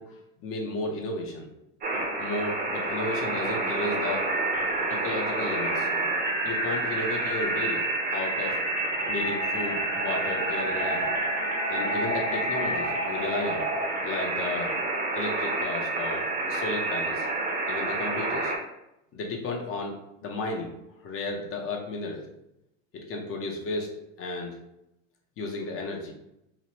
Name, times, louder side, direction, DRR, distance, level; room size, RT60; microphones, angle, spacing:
voice 1, 0.0-1.5 2.2-4.3 4.9-5.9 6.4-8.6 9.1-11.1 11.7-13.7 14.0-14.7 15.1-17.3 17.7-18.5 19.1-20.0 20.2-22.3 22.9-23.9 24.2-24.6 25.4-26.1, left 2 dB, 35° left, 1 dB, 0.6 m, -33 dB
sound 1, 1.8-18.6, right 2 dB, 25° right, 0.6 m, -28 dB
3.0 x 2.1 x 2.9 m, 0.85 s
supercardioid pair, 115°, 41 cm